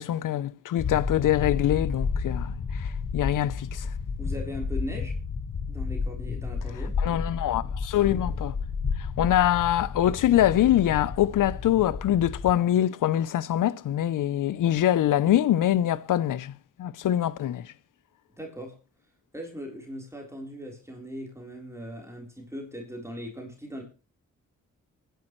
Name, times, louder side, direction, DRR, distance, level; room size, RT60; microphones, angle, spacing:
voice 1, 0.0-3.9 7.0-8.6 9.2-17.7, left 12 dB, 80° left, 0.7 m, -24 dB
sound 1, 0.8-12.5, left 5 dB, 45° left, 1.1 m, -31 dB
voice 2, 4.2-5.1 5.7-7.0 18.4-18.8 19.3-23.8, equal, 10° right, 3.9 m, -39 dB
24.5 x 10.5 x 3.1 m
cardioid pair, 55°, 31 cm